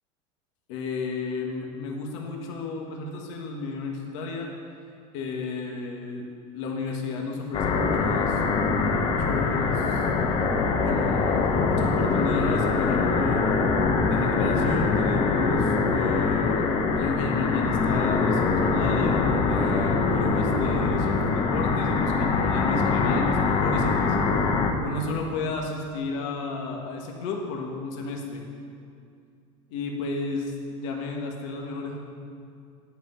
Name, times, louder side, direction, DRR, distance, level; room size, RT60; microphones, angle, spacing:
voice 1, 0.7-4.5 5.1-6.3 6.5-8.4 8.7-10.1 10.8-11.3 11.8-13.5 14.0-16.7 16.9-24.2 24.4-28.4 29.7-32.0, left 3 dB, 70° left, 1 dB, 1.5 m, -33 dB
sound 1, 7.5-24.7, left 4 dB, 30° left, 0.8 m, -23 dB
10.5 x 5.8 x 7.9 m, 2.4 s
cardioid pair, 165°, 16 cm